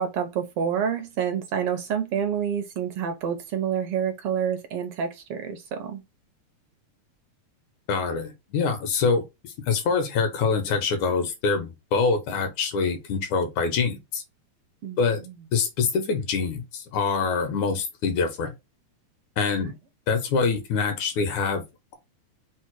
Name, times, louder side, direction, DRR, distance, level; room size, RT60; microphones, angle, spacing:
voice 1, 0.0-6.0 14.8-15.4 19.6-19.7, right 8 dB, 75° right, 1.3 m, -28 dB
voice 2, 7.9-14.2 15.0-15.2 15.5-18.5 19.4-19.7 20.1-21.6, left 5 dB, 80° left, 2.5 m, -25 dB
5.5 x 2.0 x 4.5 m
omnidirectional pair, 3.4 m